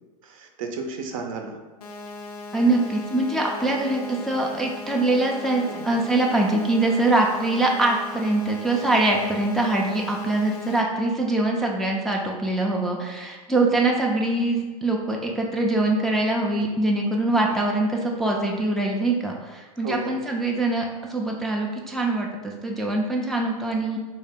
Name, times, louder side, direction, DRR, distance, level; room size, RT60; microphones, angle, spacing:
voice 1, 0.2-1.6 5.6-6.0 13.6-13.8 17.5-17.6 19.8-20.2, right 4 dB, 60° right, 4 dB, 0.6 m, -34 dB
sound 1, 1.8-10.8, left 3 dB, 85° left, 0.5 m, -38 dB
voice 2, 2.5-24.0, right 2 dB, ahead, -1 dB, 0.3 m, -23 dB
3.2 x 2.8 x 3.4 m, 1.3 s
hypercardioid pair, 110°, 19 cm